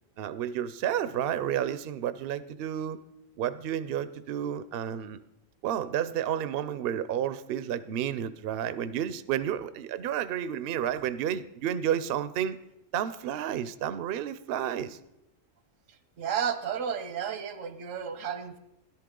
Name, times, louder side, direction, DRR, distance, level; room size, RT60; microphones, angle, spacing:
voice 1, 0.2-3.0 3.4-5.2 5.6-12.6 12.9-15.0, right 10 dB, 60° right, 13 dB, 0.7 m, -31 dB
voice 2, 16.2-18.6, right 8 dB, 85° right, 10 dB, 1.3 m, -32 dB
13.5 x 11.5 x 3.7 m, 0.88 s
omnidirectional pair, 1.3 m